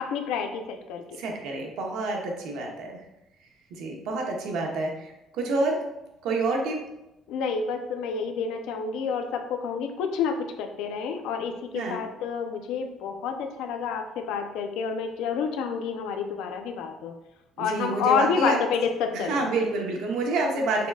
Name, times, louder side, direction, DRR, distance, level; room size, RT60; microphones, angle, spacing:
voice 1, 0.0-1.0 7.3-17.1 17.6-19.4, left 6 dB, 85° left, 5 dB, 0.5 m, -29 dB
voice 2, 1.2-3.0 3.7-5.8 6.2-6.8 11.7-12.0 17.6-18.6 19.1-20.9, right 3 dB, 75° right, 0 dB, 1.0 m, -28 dB
5.8 x 3.6 x 2.4 m, 0.91 s
cardioid pair, 160°, 0 cm